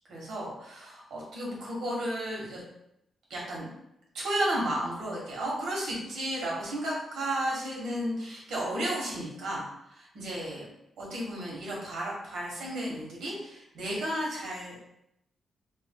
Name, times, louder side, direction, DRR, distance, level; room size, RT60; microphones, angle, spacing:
voice 1, 0.1-2.6 3.3-3.7 4.1-10.7 11.0-14.8, right 1 dB, 85° right, -4 dB, 1.3 m, -33 dB
3.2 x 2.6 x 3.7 m, 0.81 s
wide cardioid pair, 150°, 0 cm